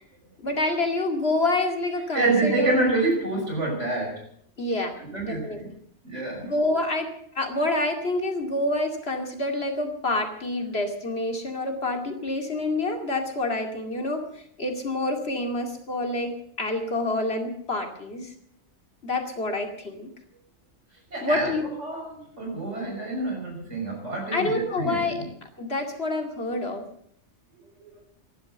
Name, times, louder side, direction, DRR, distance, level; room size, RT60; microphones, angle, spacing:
voice 1, 0.4-2.8 4.6-5.0 5.2-5.7 6.4-7.1 7.4-14.2 14.6-18.3 19.0-20.1 21.2-21.7 24.3-26.8, left 2 dB, 60° left, 4 dB, 2.6 m, -27 dB
voice 2, 2.1-4.2 5.0-5.7 6.0-6.5 21.1-21.5 21.8-25.3, right 2 dB, 85° right, 1 dB, 6.3 m, -27 dB
15.0 x 11.5 x 7.9 m, 0.65 s
omnidirectional pair, 1.2 m